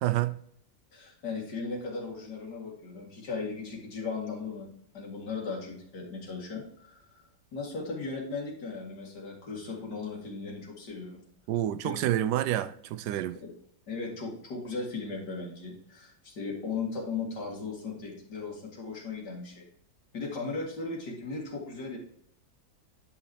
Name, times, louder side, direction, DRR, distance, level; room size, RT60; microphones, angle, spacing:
voice 1, 0.0-0.4 11.5-13.4, right 13 dB, 85° right, 1.2 m, -28 dB
voice 2, 0.9-7.2 7.5-11.2 11.8-12.0 13.4-13.5 13.9-19.7 20.1-22.0, left 4 dB, 85° left, 2.7 m, -37 dB
10.5 x 5.8 x 2.9 m
omnidirectional pair, 1.7 m